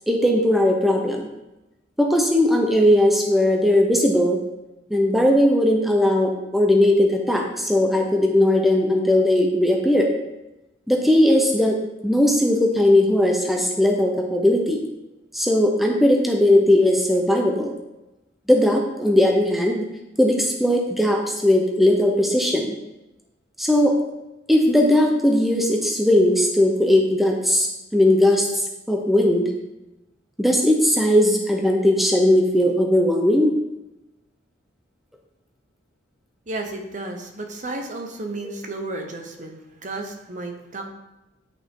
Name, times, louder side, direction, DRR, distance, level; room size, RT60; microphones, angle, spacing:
voice 1, 0.1-1.2 2.0-4.4 4.9-10.1 10.9-11.8 12.0-14.8 15.3-17.7 18.5-19.8 20.2-22.7 23.6-23.9 24.5-27.7 27.9-28.5 28.9-29.5 30.4-33.5, left 1 dB, ahead, 1 dB, 0.7 m, -18 dB
voice 2, 36.5-40.9, right 2 dB, 40° right, 4 dB, 0.9 m, -33 dB
8.9 x 5.7 x 3.7 m, 0.99 s
head